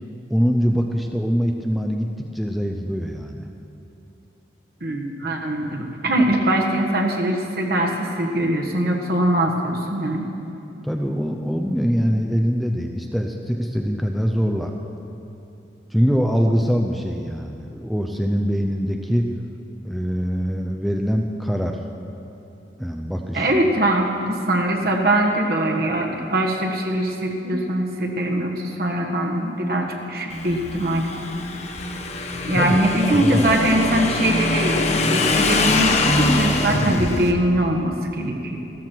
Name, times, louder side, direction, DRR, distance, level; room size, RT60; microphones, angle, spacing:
voice 1, 0.3-3.4 10.8-14.7 15.9-19.2 19.8-21.8 22.8-23.5 32.6-33.5, equal, ahead, 2 dB, 0.5 m, -23 dB
voice 2, 4.8-10.2 23.3-31.1 32.4-38.6, right 1 dB, 55° right, 1 dB, 1.5 m, -22 dB
Motorcycle / Engine, 30.3-37.3, left 2 dB, 40° left, 0.9 m, -23 dB
15.0 x 13.5 x 4.6 m, 2.8 s
head